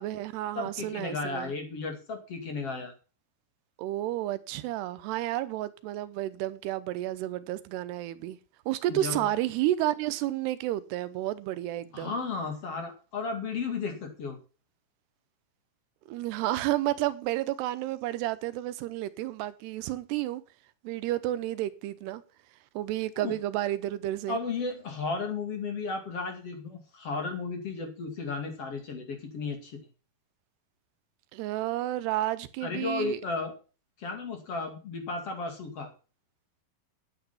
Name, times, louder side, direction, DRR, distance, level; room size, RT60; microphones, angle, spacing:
voice 1, 0.0-1.5 3.8-8.4 8.7-12.1 16.1-20.4 20.8-22.2 22.7-24.4 31.3-33.2, right 14 dB, 90° right, 2.9 m, -31 dB
voice 2, 0.6-2.9 8.9-9.3 11.9-14.4 23.2-23.3 24.3-29.8 32.6-33.5 34.0-35.9, left 4 dB, 40° left, 2.8 m, -34 dB
10.5 x 9.0 x 5.8 m
omnidirectional pair, 4.7 m